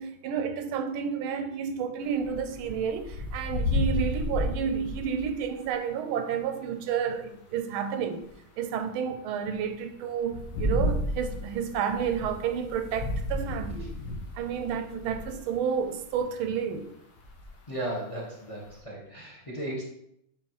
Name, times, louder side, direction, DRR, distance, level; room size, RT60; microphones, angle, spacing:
voice 1, 0.0-8.2 8.6-13.9 14.3-16.9, right 7 dB, 90° right, 1.5 m, -31 dB
sound 1, 2.2-5.5 8.3-8.4 10.2-15.4 15.8-16.2 17.2-17.5 18.6-18.8, left 1 dB, 60° left, 1.6 m, -32 dB
voice 2, 17.7-19.8, right 1 dB, 20° left, 1.0 m, -35 dB
7.6 x 4.4 x 3.0 m
omnidirectional pair, 2.2 m